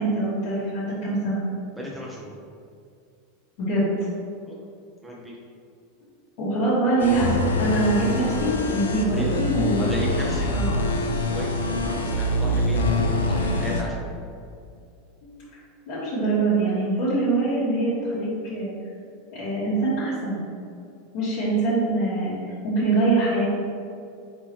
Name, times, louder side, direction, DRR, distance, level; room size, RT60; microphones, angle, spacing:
voice 1, 0.0-1.4 3.6-3.9 6.4-9.9 10.5-10.7 15.2-15.6 15.9-18.7 19.3-20.4 21.1-23.4, right 2 dB, 65° left, -11 dB, 1.5 m, -24 dB
voice 2, 1.8-2.3 4.5-4.7 5.0-5.4 9.1-14.0, equal, 5° right, -4 dB, 0.6 m, -35 dB
sound 1, 7.0-13.8, left 1 dB, 90° left, 0.4 m, -25 dB
4.0 x 3.6 x 3.0 m, 2.4 s
hypercardioid pair, 100°, 0 cm